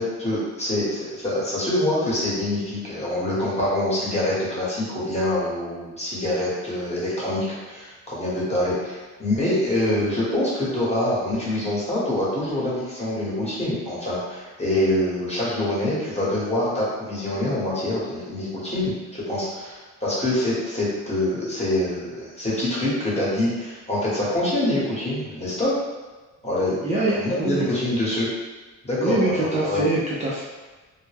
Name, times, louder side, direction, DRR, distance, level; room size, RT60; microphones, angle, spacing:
voice 1, 0.0-25.7 26.4-28.3 28.9-29.9, left 1 dB, 20° left, -7 dB, 1.1 m, -25 dB
voice 2, 26.8-27.7 29.0-30.4, right 2 dB, 25° right, -8 dB, 0.5 m, -24 dB
2.2 x 2.1 x 3.3 m, 1.3 s
cardioid pair, 90°, 30 cm